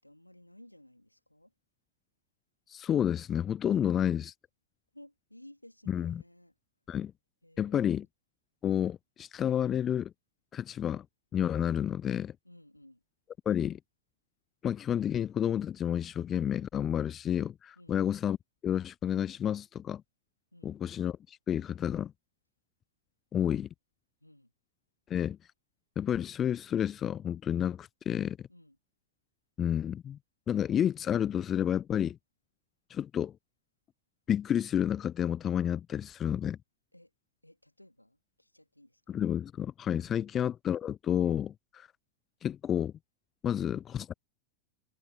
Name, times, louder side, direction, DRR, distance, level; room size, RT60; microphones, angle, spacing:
voice 1, 0.0-1.5 4.9-6.5 7.4-8.1 12.4-13.0 17.8-18.0 20.5-20.8 24.2-24.5 28.5-28.8 36.9-37.1 37.4-39.2 40.1-40.3, left 1 dB, 85° left, 3.6 m, -56 dB
voice 2, 2.7-4.3 5.9-6.2 6.9-7.1 7.6-8.1 8.6-10.1 10.5-11.1 11.3-12.3 13.5-13.8 14.6-18.4 18.6-20.0 20.6-22.1 23.3-23.7 25.1-25.4 26.0-28.4 29.6-30.2 30.5-32.2 32.9-33.3 34.3-36.6 39.1-41.9 42.4-42.9 43.4-44.1, left 9 dB, 25° left, 0.3 m, -30 dB
figure-of-eight pair, 90°, 0 cm